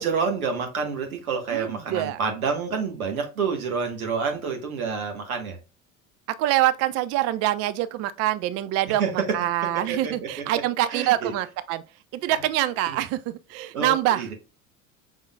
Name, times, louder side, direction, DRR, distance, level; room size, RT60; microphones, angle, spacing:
voice 1, 0.0-5.6 9.0-9.1 9.9-10.4 10.9-11.3 12.3-12.4 12.9-13.0 13.7-14.3, right 5 dB, 75° right, 1.3 m, -28 dB
voice 2, 1.5-2.2 6.3-11.8 12.1-14.2, right 14 dB, 35° right, 0.4 m, -25 dB
5.6 x 3.6 x 2.3 m
figure-of-eight pair, 70°, 43 cm